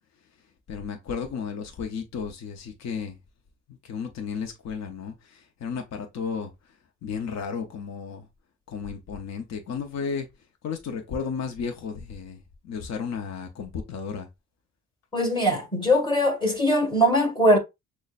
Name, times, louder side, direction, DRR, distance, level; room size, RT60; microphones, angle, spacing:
voice 1, 0.7-3.1 3.8-6.5 7.0-8.3 8.7-10.3 10.6-12.4 12.6-14.3, left 6 dB, 60° left, 0.8 m, -33 dB
voice 2, 15.1-17.6, equal, 15° left, 1.7 m, -21 dB
6.3 x 2.2 x 2.4 m
cardioid pair, 90°, 30 cm